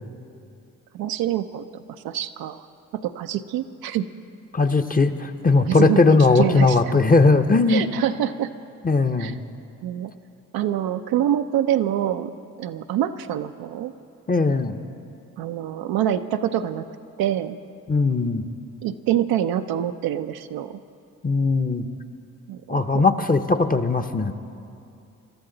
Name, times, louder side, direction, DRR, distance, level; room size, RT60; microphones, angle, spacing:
voice 1, 0.9-2.7 3.0-4.1 5.7-6.8 7.7-8.5 9.2-9.3 9.8-10.1 10.5-12.3 12.6-13.9 15.4-16.9 17.2-17.6 18.8-20.8 22.5-23.0, right 11 dB, 80° right, 8 dB, 0.6 m, -25 dB
voice 2, 4.5-7.8 8.8-9.4 14.3-14.7 17.9-18.4 21.2-21.8 22.7-24.3, left 3 dB, 25° left, 8 dB, 0.8 m, -19 dB
21.5 x 12.5 x 3.9 m, 2.6 s
supercardioid pair, 50°, 36 cm